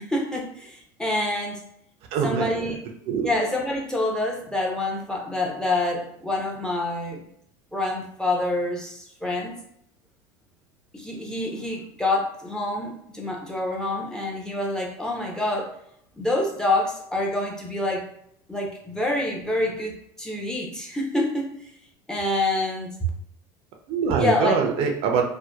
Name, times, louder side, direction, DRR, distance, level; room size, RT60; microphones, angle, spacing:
voice 1, 0.0-1.6 2.2-2.8 3.2-7.3 7.7-9.6 10.9-15.7 16.1-18.1 18.5-21.7 22.1-23.0 24.2-24.6, left 2 dB, 5° left, -1 dB, 0.5 m, -27 dB
voice 2, 2.1-2.7 3.1-3.3 23.9-25.2, right 6 dB, 60° right, 3 dB, 0.4 m, -24 dB
2.7 x 2.1 x 2.2 m, 0.70 s
supercardioid pair, 100°, 11 cm